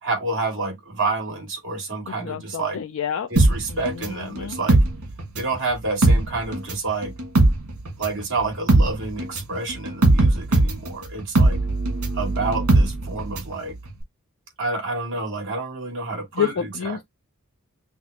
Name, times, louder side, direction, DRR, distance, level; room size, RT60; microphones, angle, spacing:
voice 1, 0.0-2.8 3.3-4.8 5.4-7.1 8.0-11.6 12.1-13.7 14.6-17.0, right 3 dB, 55° right, 2.2 m, -28 dB
voice 2, 2.2-3.3 3.9-4.6 16.4-17.0, left 8 dB, 65° left, 0.4 m, -28 dB
sound 1, 3.4-5.6 5.9-13.6 13.9-14.0, right 2 dB, 80° right, 1.8 m, -19 dB
5.7 x 2.0 x 2.9 m
head